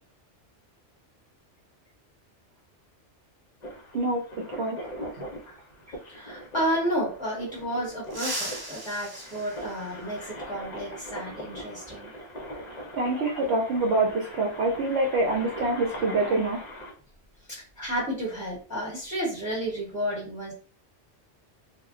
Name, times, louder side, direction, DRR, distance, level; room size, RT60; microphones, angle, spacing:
sound 1, 3.6-16.9, equal, 45° left, 0.6 m, -41 dB
voice 1, 6.1-12.1 13.2-13.3 17.5-20.5, equal, 5° right, -5 dB, 1.0 m, -31 dB
sound 2, 8.0-10.5 12.1-12.2 13.4-13.5 15.2-15.3 15.7-15.9 16.4-18.6 18.8-19.1 19.5-19.9, right 1 dB, 35° right, 0.4 m, -39 dB
voice 2, 13.0-16.6, right 2 dB, 70° right, -1 dB, 0.8 m, -25 dB
2.2 x 2.1 x 3.6 m, 0.39 s
omnidirectional pair, 1.2 m